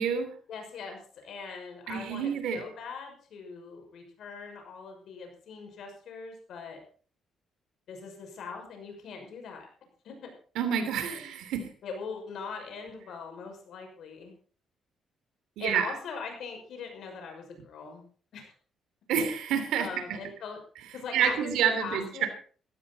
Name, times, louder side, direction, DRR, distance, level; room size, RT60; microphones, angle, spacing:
voice 1, 0.5-6.8 7.9-9.7 10.0-10.3 11.8-14.3 15.6-18.0 18.3-18.5 19.8-20.6 20.9-22.3, left 5 dB, 70° left, 4 dB, 6.0 m, -41 dB
voice 2, 1.9-2.6 10.5-11.7 15.6-15.9 19.1-19.9 21.1-22.3, right 8 dB, 85° right, 8 dB, 3.1 m, -28 dB
16.0 x 13.5 x 4.2 m, 0.43 s
cardioid pair, 90°, 0 cm